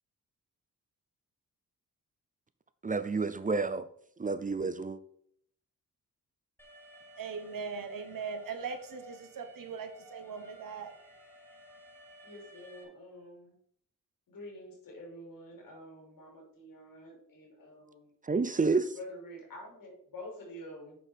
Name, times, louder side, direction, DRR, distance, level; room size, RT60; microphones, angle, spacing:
voice 1, 2.8-3.9 4.2-5.0 18.2-18.9, right 4 dB, 25° right, 0.5 m, -29 dB
Alarm, 6.6-12.8, equal, 5° left, 2.2 m, -55 dB
voice 2, 7.2-10.9, right 5 dB, 75° right, 1.4 m, -40 dB
voice 3, 12.2-13.5 14.3-18.1 18.9-21.0, left 1 dB, 90° left, 3.2 m, -48 dB
8.1 x 6.0 x 4.4 m
cardioid pair, 100°, 33 cm